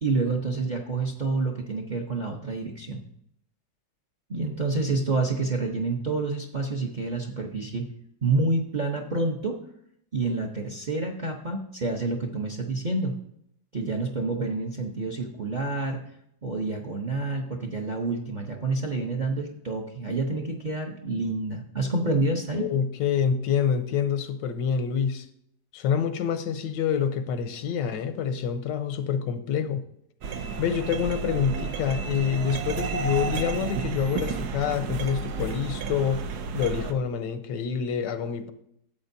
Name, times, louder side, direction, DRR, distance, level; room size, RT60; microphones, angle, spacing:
voice 1, 0.0-3.0 4.3-7.9 8.2-9.6 10.1-13.1 13.7-16.0 16.4-22.7, right 3 dB, 40° right, 2 dB, 0.7 m, -28 dB
voice 2, 22.5-25.3 25.7-29.8 30.6-36.3 36.5-38.5, left 7 dB, 85° left, 10 dB, 1.4 m, -27 dB
sound 1, 30.2-36.9, right 5 dB, 70° right, 1.2 m, -32 dB
12.5 x 7.7 x 2.7 m, 0.72 s
omnidirectional pair, 1.9 m